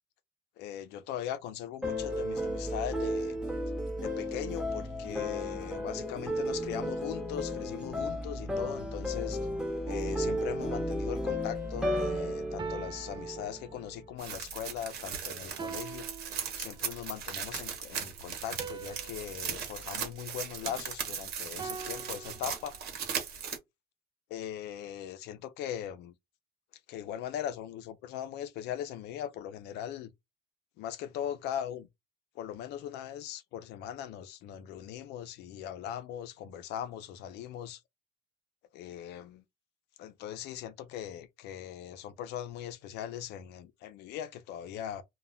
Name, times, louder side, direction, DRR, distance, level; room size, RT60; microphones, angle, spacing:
voice 1, 0.6-3.4 4.0-9.5 9.9-16.1 16.6-22.7 24.3-26.1 26.9-30.1 30.8-31.9 32.3-37.8 38.7-39.4 40.0-45.0, left 10 dB, 85° left, 0.5 m, -40 dB
sound 1, 1.8-13.9, left 1 dB, 5° right, 1.0 m, -34 dB
sound 2, 9.9-11.2 12.6-14.2 15.6-17.0 18.6-21.0 21.6-22.9, right 6 dB, 25° right, 0.3 m, -45 dB
sound 3, 14.2-23.6, right 7 dB, 70° right, 1.0 m, -38 dB
2.2 x 2.1 x 3.4 m
cardioid pair, 110°, 17 cm